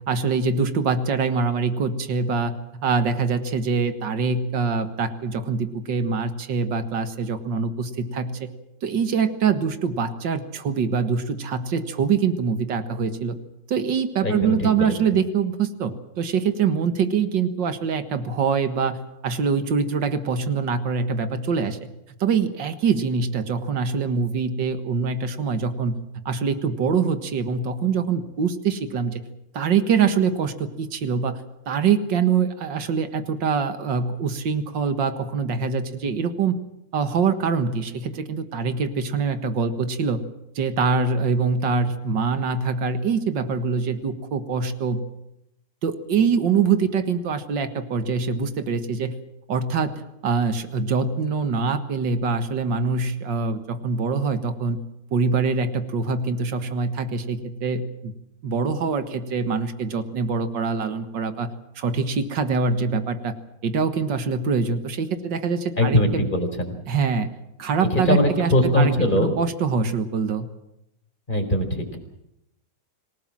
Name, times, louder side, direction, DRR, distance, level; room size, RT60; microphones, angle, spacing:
voice 1, 0.1-2.5 2.8-8.5 8.8-13.4 13.7-21.9 22.2-26.0 26.3-29.2 29.5-36.6 36.9-40.2 40.6-45.0 45.8-49.1 49.5-54.8 55.1-58.1 58.4-61.5 61.8-63.3 63.6-66.3 66.9-67.3 67.6-70.5, right 5 dB, 85° right, 9 dB, 2.2 m, -24 dB
voice 2, 14.2-14.9 65.8-66.7 67.9-69.3 71.3-72.0, left 1 dB, 25° left, 4 dB, 4.7 m, -21 dB
27.0 x 18.0 x 7.4 m, 0.83 s
omnidirectional pair, 1.9 m